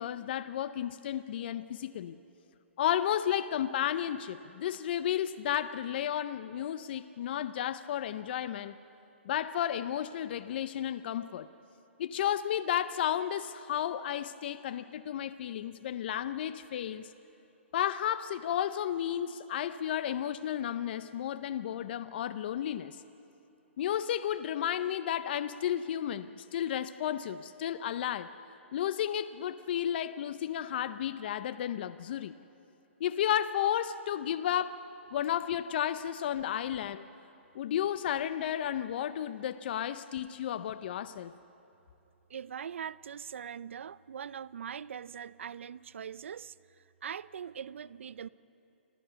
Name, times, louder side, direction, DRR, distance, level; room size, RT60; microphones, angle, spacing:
voice 1, 0.0-2.2 2.8-8.8 9.2-11.5 12.0-17.1 17.7-23.0 23.8-28.3 28.7-32.3 33.0-34.8 35.1-37.0 37.5-41.3, left 10 dB, 50° left, 13 dB, 0.6 m, -32 dB
voice 2, 42.3-48.3, right 8 dB, 70° right, 19 dB, 0.5 m, -42 dB
26.5 x 15.0 x 6.9 m, 2.9 s
hypercardioid pair, 140°, 7 cm